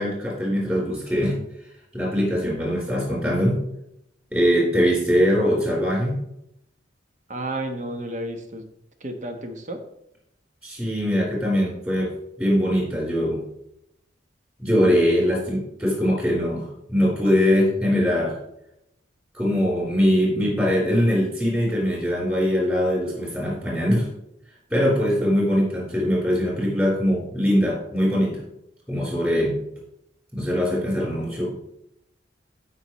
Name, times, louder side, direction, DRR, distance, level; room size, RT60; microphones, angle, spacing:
voice 1, 0.0-1.3 1.9-3.6 4.3-6.2 10.6-13.4 14.6-18.4 19.3-24.1 24.7-28.4 28.9-29.6 30.3-31.5, equal, 15° right, -5 dB, 4.2 m, -22 dB
voice 2, 7.3-8.7 9.0-9.8, right 1 dB, 40° right, 5 dB, 1.2 m, -31 dB
16.0 x 5.6 x 3.1 m, 0.79 s
head